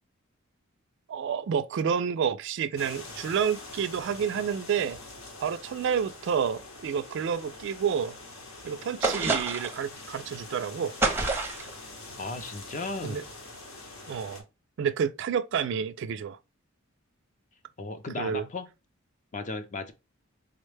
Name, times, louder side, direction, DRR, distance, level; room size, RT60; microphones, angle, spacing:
voice 1, 1.1-5.0 5.4-8.1 8.6-10.9 13.0-13.2 14.1-14.4 14.8-16.4 18.2-18.4, right 7 dB, 60° right, 0.3 m, -29 dB
sound 1, 2.7-14.4, left 2 dB, 80° left, 0.9 m, -45 dB
sound 2, 9.0-9.8 11.0-11.7, right 3 dB, 10° right, 0.6 m, -27 dB
voice 2, 12.2-13.2 17.8-18.7 19.3-19.9, left 3 dB, 35° left, 0.5 m, -35 dB
3.8 x 2.1 x 3.2 m
head